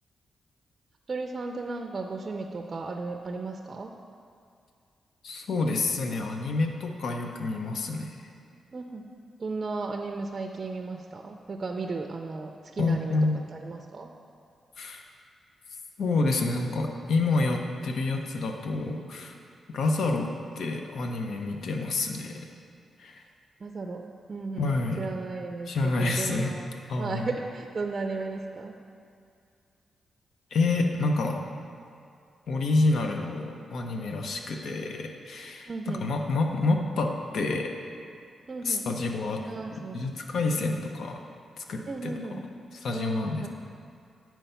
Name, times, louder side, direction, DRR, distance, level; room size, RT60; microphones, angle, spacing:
voice 1, 1.1-3.9 8.7-9.1 9.4-13.2 13.5-14.1 23.6-26.7 27.0-28.8 35.7-36.1 38.5-38.9 39.4-40.0 40.6-40.8 41.9-42.4 42.9-43.5, right 3 dB, 40° right, 3 dB, 0.4 m, -35 dB
voice 2, 5.2-8.2 12.8-13.4 14.8-15.0 16.0-19.3 19.7-20.3 20.6-22.4 23.0-23.2 24.6-25.1 25.7-26.5 26.9-27.3 30.5-31.4 32.5-37.7 38.6-39.4 39.9-41.2 41.6-42.3 42.7-43.5, left 3 dB, 75° left, 3 dB, 0.7 m, -28 dB
9.0 x 4.5 x 5.6 m, 2.4 s
cardioid pair, 110°, 0 cm